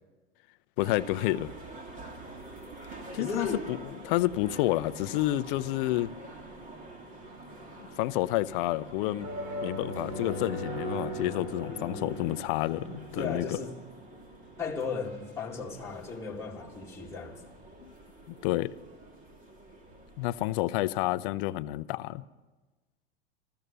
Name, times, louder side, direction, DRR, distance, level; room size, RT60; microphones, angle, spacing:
voice 1, 0.8-1.5 3.1-3.8 4.0-6.1 7.8-9.3 9.6-13.5 17.8-17.9 18.4-18.7 20.2-22.2, left 17 dB, 55° left, 0.6 m, -29 dB
sound 1, 0.8-20.6, right 1 dB, 25° right, 2.4 m, -46 dB
voice 2, 3.1-3.6 11.7-12.4 12.8-13.8 14.6-17.4, left 4 dB, 10° left, 2.0 m, -36 dB
sound 2, 3.9-14.4, right 1 dB, 80° right, 4.8 m, -42 dB
14.0 x 14.0 x 6.8 m
supercardioid pair, 125°, 31 cm